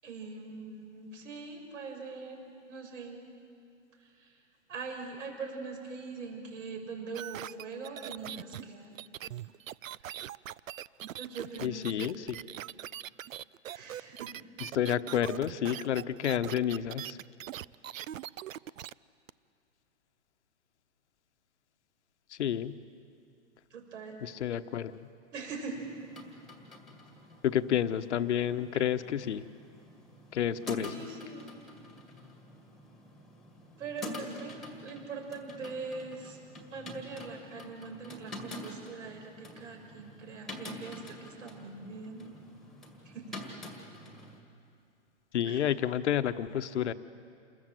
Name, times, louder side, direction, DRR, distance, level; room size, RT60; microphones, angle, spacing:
voice 1, 0.0-3.2 4.0-4.4 4.7-9.1 11.1-12.1 13.7-14.3 23.7-24.2 25.3-25.9 30.8-31.5 33.8-36.4 36.7-42.3 43.0-43.4 45.4-45.6, right 4 dB, 70° right, 2 dB, 6.6 m, -42 dB
sound 1, 7.1-18.9 19.3-19.4, right 11 dB, 90° right, 0.6 m, -42 dB
voice 2, 11.6-12.2 14.6-17.2 22.3-22.8 24.2-25.1 27.4-29.4 30.3-31.0 45.3-46.9, left 10 dB, 60° left, 11 dB, 1.1 m, -30 dB
sound 2, 25.7-44.4, left 1 dB, ahead, 1.7 m, -47 dB
28.5 x 21.0 x 7.8 m, 2.5 s
hypercardioid pair, 165°, 38 cm